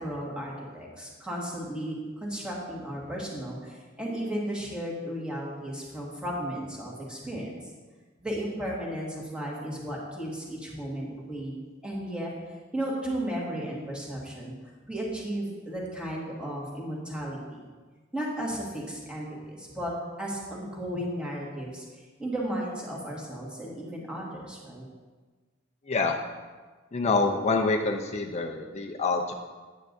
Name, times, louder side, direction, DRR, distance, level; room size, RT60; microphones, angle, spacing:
voice 1, 0.0-7.6 8.2-12.3 12.7-14.5 14.8-17.7 18.1-19.9 20.2-21.9 22.2-24.9, right 1 dB, 5° right, -5 dB, 1.7 m, -34 dB
voice 2, 25.9-26.2 26.9-29.3, left 3 dB, 30° left, 2 dB, 0.5 m, -26 dB
9.2 x 8.9 x 2.6 m, 1.4 s
head